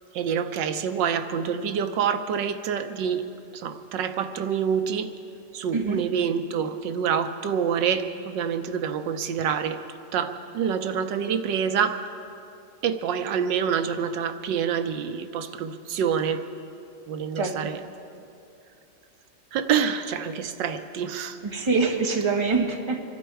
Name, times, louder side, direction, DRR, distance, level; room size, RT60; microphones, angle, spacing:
voice 1, 0.1-3.2 3.5-5.1 5.5-9.8 10.1-12.1 12.8-16.5 17.1-17.8 19.5-21.4, right 7 dB, 85° right, 9 dB, 1.5 m, -27 dB
voice 2, 17.3-17.7 21.4-23.0, right 4 dB, 20° right, 2 dB, 1.2 m, -25 dB
26.0 x 11.5 x 4.7 m, 2.6 s
omnidirectional pair, 1.9 m